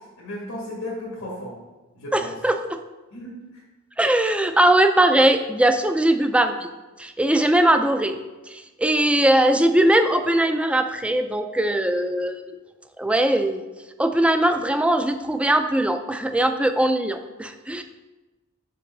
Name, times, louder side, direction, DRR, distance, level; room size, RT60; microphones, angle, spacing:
voice 1, 0.0-1.6 1.9-2.4 3.1-3.6, left 1 dB, 90° left, -6 dB, 1.9 m, -35 dB
voice 2, 2.1-2.8 4.0-6.7 7.0-12.5 13.0-13.6 14.0-17.8, right 1 dB, 5° right, 7 dB, 0.4 m, -20 dB
5.7 x 5.3 x 5.4 m, 1.2 s
head